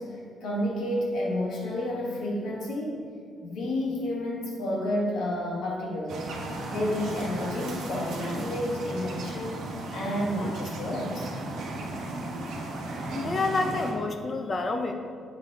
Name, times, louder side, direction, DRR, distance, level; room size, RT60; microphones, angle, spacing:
voice 1, 0.0-3.1 3.4-6.3 6.7-11.3, left 1 dB, 80° left, -3 dB, 1.8 m, -30 dB
sound 1, 6.1-13.9, right 2 dB, 80° right, 1.1 m, -35 dB
voice 2, 13.1-14.9, left 3 dB, 40° left, 5 dB, 0.8 m, -28 dB
8.1 x 4.1 x 4.9 m, 2.2 s
cardioid pair, 90°, 0 cm